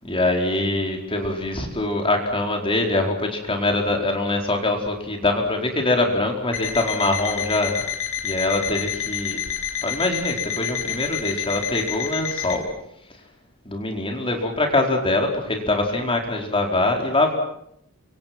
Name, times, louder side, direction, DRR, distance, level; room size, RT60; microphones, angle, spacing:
voice 1, 0.0-7.8 8.2-9.4 9.8-12.7 13.6-17.3, left 2 dB, 25° left, 2 dB, 4.6 m, -23 dB
Alarm, 6.5-12.6, left 9 dB, 65° left, 5.9 m, -29 dB
29.5 x 26.0 x 6.1 m, 0.74 s
head